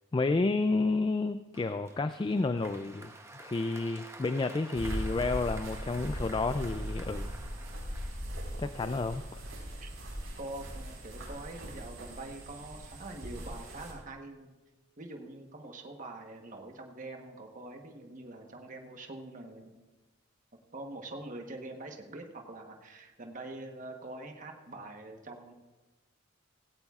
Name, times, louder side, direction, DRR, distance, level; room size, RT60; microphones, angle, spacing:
voice 1, 0.1-3.1 3.4-7.3 8.6-9.4, left 3 dB, 25° left, 10 dB, 0.3 m, -30 dB
Applause, 1.5-8.6, right 2 dB, 15° right, 0.8 m, -50 dB
sound 1, 4.8-13.9, equal, 85° right, 4.7 m, -39 dB
voice 2, 10.4-14.6 15.0-19.8 20.7-25.5, right 2 dB, 40° right, 3 dB, 1.1 m, -44 dB
16.5 x 16.0 x 2.4 m, 1.2 s
head